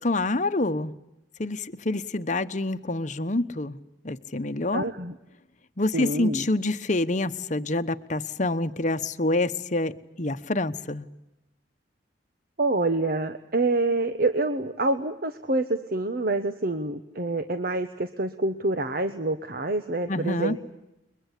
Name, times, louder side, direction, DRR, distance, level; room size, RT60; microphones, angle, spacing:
voice 1, 0.0-0.9 1.4-3.8 4.0-4.9 5.8-11.1 20.1-20.6, left 2 dB, 40° left, 10 dB, 1.1 m, -27 dB
voice 2, 4.7-5.1 5.9-6.5 12.6-20.6, right 2 dB, 50° right, 9 dB, 1.1 m, -27 dB
29.5 x 22.5 x 8.4 m, 0.92 s
head